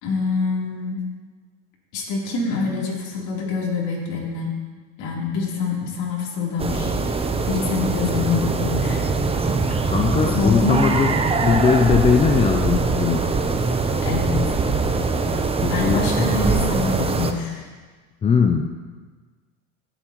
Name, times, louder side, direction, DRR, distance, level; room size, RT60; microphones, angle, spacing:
voice 1, 0.0-1.0 1.9-4.5 5.0-7.2 7.5-9.0 10.3-10.8 14.0-14.6 15.3-15.4 15.7-17.7, left 4 dB, 65° left, -3 dB, 3.4 m, -25 dB
sound 1, 6.6-17.3, right 4 dB, 15° right, 0.7 m, -22 dB
voice 2, 9.9-11.2 11.4-13.2 15.6-16.3 18.2-18.7, left 6 dB, 15° left, 4 dB, 0.3 m, -20 dB
17.0 x 8.0 x 3.0 m, 1.4 s
supercardioid pair, 105°, 44 cm